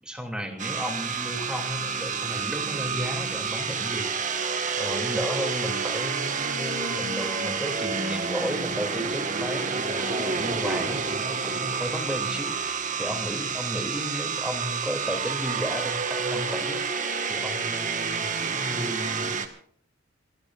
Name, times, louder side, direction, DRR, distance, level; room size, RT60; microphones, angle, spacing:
voice 1, 0.0-4.4 4.8-17.0 17.3-19.4, equal, 5° right, 3 dB, 2.9 m, -34 dB
sound 1, 0.6-19.5, right 5 dB, 40° right, 1.7 m, -29 dB
27.0 x 18.0 x 2.6 m, 0.63 s
head